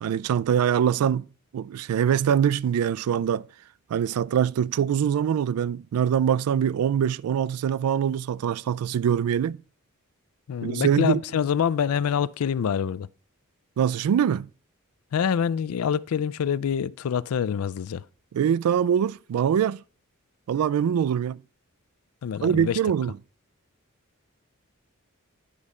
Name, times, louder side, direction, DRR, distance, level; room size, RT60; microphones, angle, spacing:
voice 1, 0.0-1.3 1.5-3.4 3.9-9.6 10.6-11.2 13.8-14.5 18.3-19.8 20.5-21.4 22.4-23.1, right 8 dB, 80° right, 0.3 m, -23 dB
voice 2, 10.5-13.1 15.1-18.0 22.2-22.8, left 7 dB, 75° left, 0.4 m, -26 dB
10.0 x 4.9 x 4.1 m
head